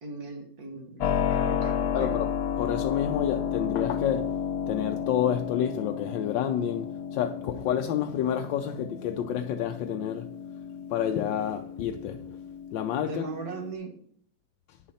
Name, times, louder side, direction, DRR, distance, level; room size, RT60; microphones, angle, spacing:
voice 1, 0.0-2.1 13.1-14.0, right 3 dB, 55° right, 2.0 m, -38 dB
Keyboard (musical), 1.0-13.7, left 8 dB, 70° left, 1.2 m, -32 dB
voice 2, 1.9-2.3 2.6-10.4 10.9-12.4 12.7-13.3 14.7-14.8, left 9 dB, 85° left, 1.3 m, -29 dB
9.1 x 7.2 x 4.1 m
omnidirectional pair, 1.9 m